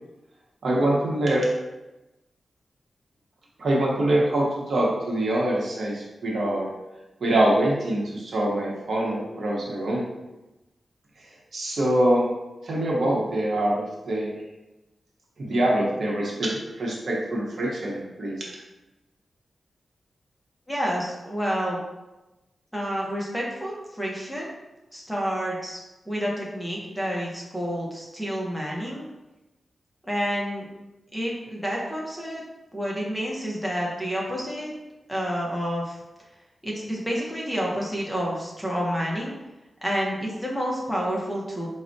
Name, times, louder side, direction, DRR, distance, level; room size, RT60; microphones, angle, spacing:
voice 1, 0.6-1.5 3.6-6.7 7.2-10.0 11.5-12.3 12.6-14.3 15.4-18.5, right 1 dB, 65° right, -3 dB, 0.7 m, -24 dB
voice 2, 20.7-21.8 22.7-24.5 24.9-25.8 26.1-29.0 30.0-30.6 31.1-32.4 32.7-34.7 35.1-36.0 36.6-39.3 39.8-41.7, equal, 5° left, -4 dB, 0.6 m, -29 dB
4.4 x 2.0 x 2.5 m, 1.0 s
wide cardioid pair, 150°, 0 cm